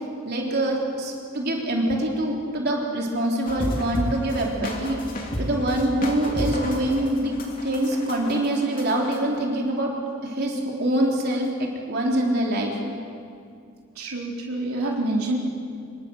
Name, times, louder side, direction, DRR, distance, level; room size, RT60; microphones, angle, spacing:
voice 1, 0.2-5.0 5.4-7.4 7.6-9.9 10.2-12.7, right 1 dB, 45° right, -1 dB, 3.8 m, -24 dB
sound 1, 3.5-9.2, equal, 40° left, 3.2 m, -31 dB
voice 2, 14.0-15.4, right 2 dB, 75° right, -2 dB, 4.1 m, -27 dB
26.0 x 23.0 x 6.4 m, 2.3 s
head